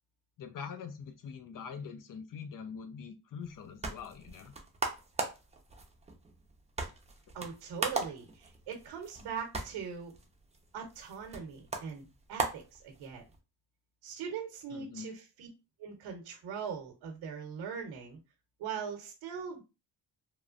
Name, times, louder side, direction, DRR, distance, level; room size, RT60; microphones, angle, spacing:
voice 1, 0.4-4.5 14.7-15.1, left 6 dB, 50° left, 8 dB, 0.7 m, -44 dB
sound 1, 3.4-13.4, right 3 dB, 15° right, 0.6 m, -40 dB
voice 2, 7.3-10.1 10.7-13.2 14.0-15.5 15.8-18.2 18.6-19.6, right 6 dB, 85° right, 2 dB, 0.9 m, -41 dB
3.1 x 2.1 x 2.5 m, 0.28 s
cardioid pair, 85°, 41 cm